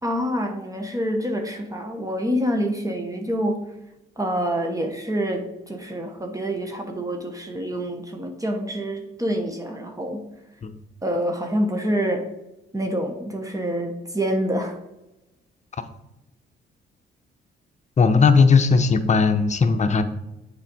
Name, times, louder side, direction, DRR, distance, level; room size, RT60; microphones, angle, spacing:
voice 1, 0.0-3.6 4.2-10.3 11.0-12.3 12.7-14.8, equal, 15° right, 3 dB, 1.0 m, -26 dB
voice 2, 18.0-20.0, left 4 dB, 35° left, 9 dB, 0.8 m, -17 dB
7.3 x 4.3 x 5.3 m, 0.95 s
cardioid pair, 90°, 20 cm